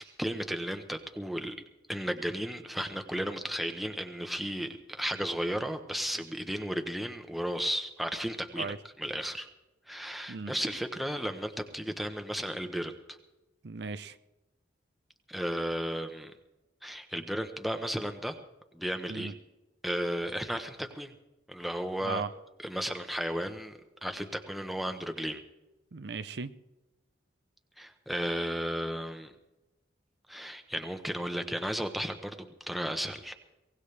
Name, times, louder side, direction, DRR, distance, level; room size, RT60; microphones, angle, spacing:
voice 1, 0.0-1.5 1.9-9.5 9.9-12.9 15.3-16.3 16.8-18.4 18.7-19.3 19.8-21.1 21.5-22.2 22.6-25.4 27.8-29.3 30.3-33.4, equal, ahead, 6 dB, 0.9 m, -34 dB
voice 2, 13.6-14.2 19.1-19.3 22.0-22.3 25.9-26.5, right 4 dB, 60° right, 11 dB, 0.6 m, -37 dB
23.0 x 18.5 x 3.3 m, 1.0 s
head